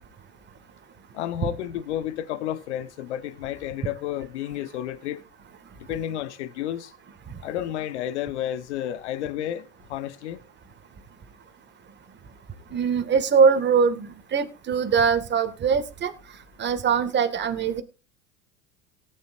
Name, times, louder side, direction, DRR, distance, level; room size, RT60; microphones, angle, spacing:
voice 1, 1.1-5.2 5.8-6.9 7.4-10.4, left 11 dB, 75° left, 1.0 m, -31 dB
voice 2, 12.7-16.1 16.6-17.8, right 6 dB, 30° right, 1.9 m, -22 dB
18.0 x 9.1 x 2.5 m
hypercardioid pair, 85°, 34 cm